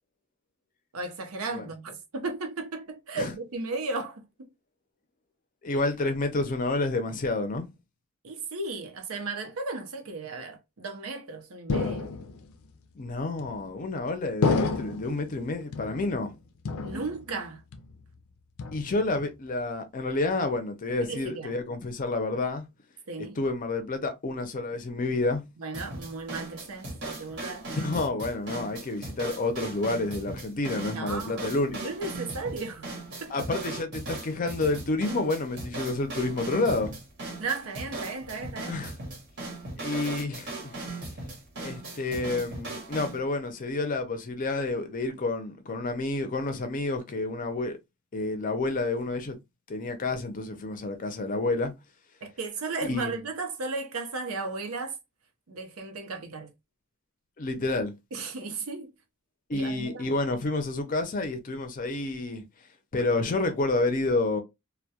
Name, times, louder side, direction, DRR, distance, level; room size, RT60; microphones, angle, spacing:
voice 1, 0.9-4.5 8.2-12.1 16.8-17.6 21.0-21.5 23.1-23.4 25.6-27.7 30.9-31.6 31.8-32.9 33.2-33.3 37.4-38.8 52.2-55.0 55.5-56.5 58.1-58.9 59.5-60.2, right 3 dB, 75° right, 0.6 m, -35 dB
voice 2, 5.6-7.7 12.9-16.3 18.7-22.6 23.4-25.4 27.7-31.9 33.3-36.9 38.7-39.0 39.8-40.7 41.6-47.8 48.1-49.4 49.7-51.7 52.8-53.2 57.4-57.9 59.5-62.4 62.9-64.4, left 2 dB, 40° left, 0.5 m, -29 dB
sound 1, 11.7-12.5 13.4-13.9 14.4-15.2 15.7-16.3 16.6-17.4 17.7-18.2 18.6-19.2, left 4 dB, 85° left, 0.4 m, -30 dB
sound 2, 25.7-43.2, right 2 dB, 55° right, 0.9 m, -38 dB
2.2 x 2.1 x 2.7 m
head